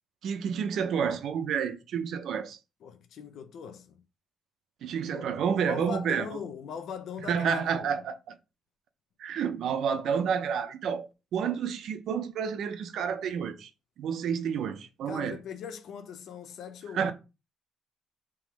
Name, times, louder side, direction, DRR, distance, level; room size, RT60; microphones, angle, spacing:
voice 1, 0.2-2.6 4.8-6.3 7.2-8.3 9.2-11.1 11.3-13.7 14.0-15.4 16.9-17.1, right 7 dB, 60° right, 0.6 m, -30 dB
voice 2, 2.8-4.0 5.1-5.3 5.5-8.0 15.1-17.1, left 7 dB, 60° left, 0.6 m, -40 dB
3.6 x 3.0 x 4.7 m
cardioid pair, 180°, 0 cm